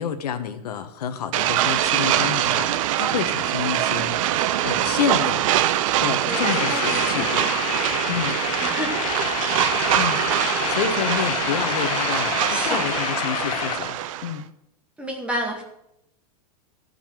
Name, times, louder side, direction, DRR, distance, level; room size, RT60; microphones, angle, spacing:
voice 1, 0.0-5.4 6.0-7.5 8.1-8.4 9.8-10.3 10.7-14.5, left 8 dB, 85° left, 9 dB, 1.4 m, -29 dB
sound 1, 1.3-14.4, right 12 dB, 60° right, 0.7 m, -23 dB
voice 2, 6.2-7.5 8.6-9.0 12.5-12.8 15.0-15.6, equal, 5° right, 1 dB, 1.9 m, -30 dB
sound 2, 6.3-13.8, left 14 dB, 65° left, 0.6 m, -29 dB
Rattle, 9.0-13.9, left 9 dB, 25° left, 0.7 m, -34 dB
14.0 x 5.7 x 7.4 m, 0.80 s
supercardioid pair, 155°, 20 cm